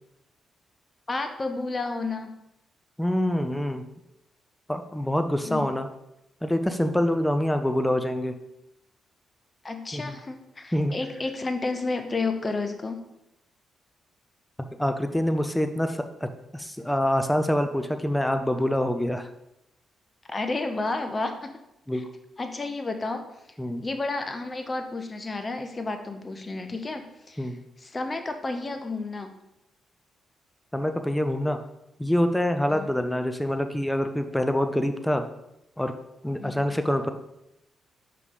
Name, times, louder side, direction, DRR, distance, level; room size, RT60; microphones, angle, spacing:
voice 1, 1.1-2.3 5.4-5.7 9.6-13.0 20.3-21.5 21.9-22.0 22.4-23.2 23.8-27.5 27.8-29.3 32.7-32.9 36.4-36.7, left 3 dB, 35° left, 6 dB, 0.9 m, -31 dB
voice 2, 3.0-3.9 4.7-5.9 6.4-8.3 9.9-10.2 10.7-10.9 14.8-19.3 21.9-22.1 23.6-23.8 27.4-27.6 30.7-31.6 32.0-35.2 35.8-35.9 36.2-37.1, left 1 dB, 10° left, 8 dB, 0.7 m, -26 dB
5.4 x 4.7 x 4.0 m, 0.85 s
hypercardioid pair, 40°, 0 cm